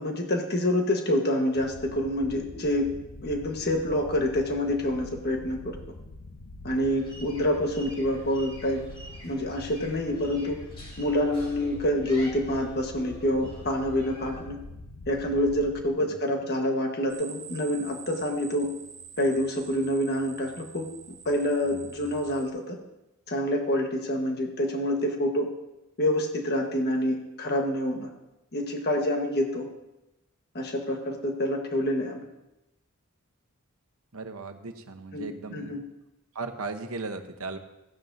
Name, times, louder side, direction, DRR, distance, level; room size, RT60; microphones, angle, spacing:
voice 1, 0.0-2.9 3.2-5.8 6.6-8.8 9.2-10.6 11.0-14.6 15.1-18.7 19.2-20.8 21.2-22.8 23.3-25.5 26.0-28.1 28.5-29.7 30.5-32.2 35.1-35.8, left 1 dB, 50° left, 3 dB, 1.4 m, -27 dB
sound 1, 1.5-15.9, left 2 dB, 65° left, 0.7 m, -45 dB
sound 2, 6.8-14.4, equal, 25° left, 5.0 m, -48 dB
sound 3, 17.1-22.5, right 7 dB, 55° right, 1.6 m, -46 dB
voice 2, 34.1-35.8 36.3-37.6, right 3 dB, 75° right, 7 dB, 1.0 m, -37 dB
16.0 x 10.5 x 2.7 m, 0.95 s
head